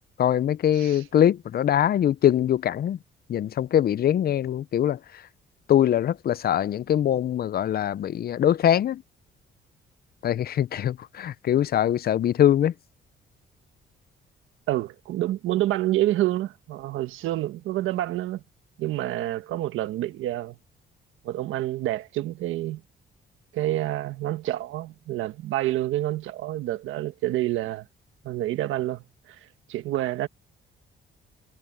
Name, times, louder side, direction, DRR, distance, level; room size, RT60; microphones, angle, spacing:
voice 1, 0.2-3.0 3.3-5.3 5.7-9.0 10.2-12.7, left 10 dB, 50° left, 0.5 m, -23 dB
voice 2, 14.7-18.4 18.8-20.5 21.2-22.8 23.5-27.9 28.2-30.3, right 14 dB, 90° right, 1.4 m, -28 dB
cardioid pair, 90°, 20 cm